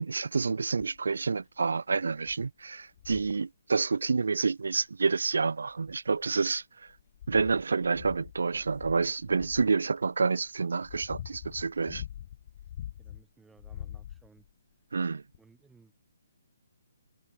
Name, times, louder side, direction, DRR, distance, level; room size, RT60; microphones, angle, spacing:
voice 1, 0.0-6.9 7.3-12.0 14.9-15.2, right 4 dB, 80° right, 1.3 m, -28 dB
sound 1, 0.8-1.1 1.7-1.8 2.2-2.5 3.0-3.4 4.8-4.9 5.7-6.4 6.9-9.7 10.5-13.2 13.6-14.5 15.3-15.4, left 11 dB, 45° left, 2.5 m, -44 dB
voice 2, 13.0-15.0 15.4-15.9, right 4 dB, 5° right, 4.1 m, -61 dB
hypercardioid pair, 150°, 0 cm